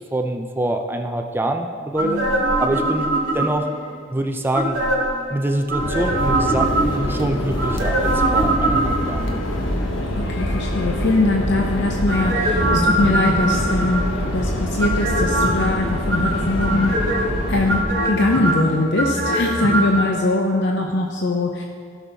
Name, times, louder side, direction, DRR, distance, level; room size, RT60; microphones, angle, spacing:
voice 1, 0.1-2.2 2.6-3.1 3.3-3.7 4.1-4.8 5.3-9.3, right 1 dB, 10° right, 4 dB, 0.5 m, -25 dB
voice 2, 2.0-2.4 8.3-8.8 9.6-14.0 14.3-16.9 17.5-17.8 18.1-21.6, left 2 dB, 65° left, 2 dB, 0.7 m, -22 dB
sound 1, 2.0-3.8 4.5-5.2 5.7-7.1 7.6-9.3 12.1-14.2 14.8-15.7 16.1-17.3 17.7-20.0 20.3-20.4, right 1 dB, 75° right, 2.1 m, -22 dB
sound 2, 5.8-17.8, left 1 dB, 80° left, 1.2 m, -25 dB
15.5 x 6.3 x 4.1 m, 2.1 s
head